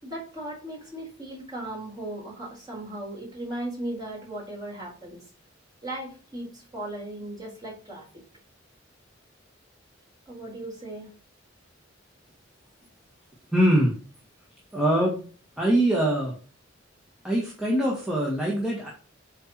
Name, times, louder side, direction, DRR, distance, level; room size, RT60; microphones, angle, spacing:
voice 1, 0.0-5.3 5.8-8.0 10.3-11.1, right 1 dB, 20° right, -3 dB, 4.3 m, -37 dB
voice 2, 13.5-13.9 14.7-15.2 15.6-16.3 17.2-18.9, right 1 dB, 5° right, -4 dB, 1.8 m, -23 dB
8.2 x 4.5 x 4.5 m, 0.39 s
head